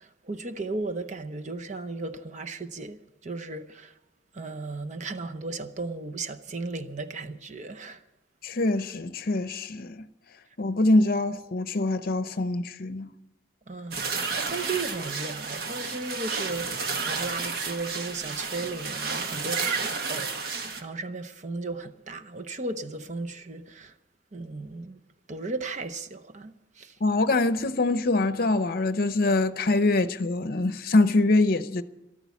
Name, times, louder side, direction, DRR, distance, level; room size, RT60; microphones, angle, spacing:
voice 1, 0.0-3.0 3.2-3.9 4.3-8.0 13.7-23.9 24.3-25.0 25.3-26.9, right 3 dB, 40° right, 0.7 m, -35 dB
voice 2, 8.4-10.1 10.6-13.1 27.0-31.8, left 2 dB, 55° left, 0.7 m, -24 dB
sound 1, 13.9-20.8, right 4 dB, 55° right, 1.4 m, -32 dB
13.5 x 13.0 x 7.1 m
head